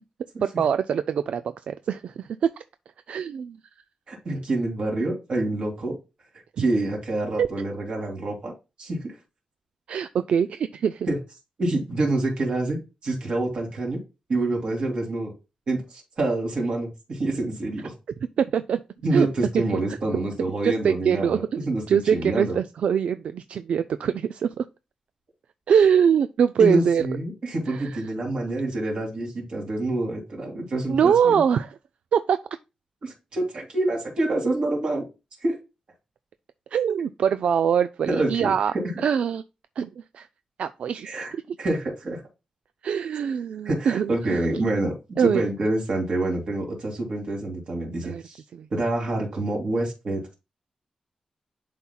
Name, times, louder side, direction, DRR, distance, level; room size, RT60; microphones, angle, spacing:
voice 1, 0.4-1.4 1.7-2.5 3.1-3.6 6.6-6.7 7.4-7.5 9.9-11.1 18.4-18.8 19.1-19.3 19.5-19.6 20.6-24.7 25.7-27.0 27.7-28.0 30.9-31.8 32.1-32.4 36.7-38.7 39.0-39.4 39.8-40.3 40.6-41.1 42.8-44.5 45.2-45.4 48.0-48.2 48.5-48.7, right 7 dB, 80° right, 0.3 m, -23 dB
voice 2, 4.1-6.0 6.6-8.5 8.8-9.1 11.1-11.2 11.6-14.0 14.3-15.3 15.7-15.8 16.2-17.9 19.0-21.4 21.7-22.6 26.6-31.4 33.0-35.0 35.4-35.6 38.1-38.8 41.0-41.3 41.6-42.2 43.6-48.4 48.7-50.3, right 2 dB, 55° right, 3.1 m, -27 dB
11.0 x 4.3 x 2.2 m
wide cardioid pair, 170°, 2 cm